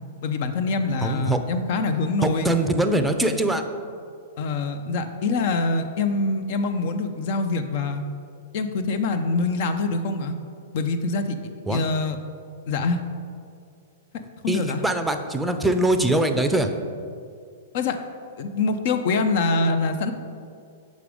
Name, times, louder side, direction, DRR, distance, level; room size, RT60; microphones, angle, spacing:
voice 1, 0.2-2.5 4.4-8.0 8.5-10.3 10.7-11.4 11.7-12.2 12.7-13.0 14.4-14.8 17.7-18.0 18.4-20.1, left 3 dB, 55° left, 8 dB, 0.6 m, -24 dB
voice 2, 1.0-1.4 2.2-3.7 11.7-11.8 14.5-16.7, right 1 dB, 5° right, 6 dB, 0.5 m, -22 dB
6.6 x 5.1 x 4.9 m, 2.3 s
hypercardioid pair, 115°, 0 cm